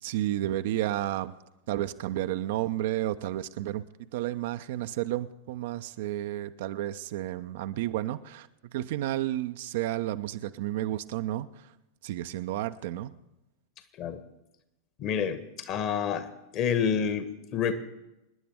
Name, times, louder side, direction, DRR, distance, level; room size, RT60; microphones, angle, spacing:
voice 1, 0.0-1.3 1.7-3.8 4.1-11.7 12.0-13.1, right 14 dB, 55° right, 11 dB, 0.6 m, -31 dB
voice 2, 15.0-16.3 16.5-17.7, left 7 dB, 35° left, 11 dB, 1.3 m, -28 dB
26.0 x 10.0 x 3.6 m, 0.94 s
figure-of-eight pair, 90°, 0 cm